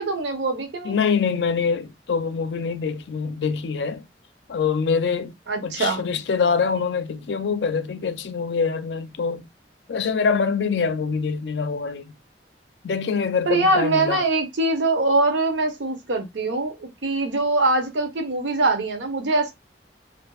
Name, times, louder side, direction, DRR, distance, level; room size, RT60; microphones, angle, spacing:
voice 1, 0.0-0.9 5.5-6.0 13.5-19.5, right 2 dB, 85° right, 0.7 m, -23 dB
voice 2, 0.8-4.0 4.5-5.4 5.6-9.5 9.9-12.1 12.8-14.2, left 5 dB, 70° left, 0.4 m, -24 dB
2.6 x 2.5 x 2.2 m
head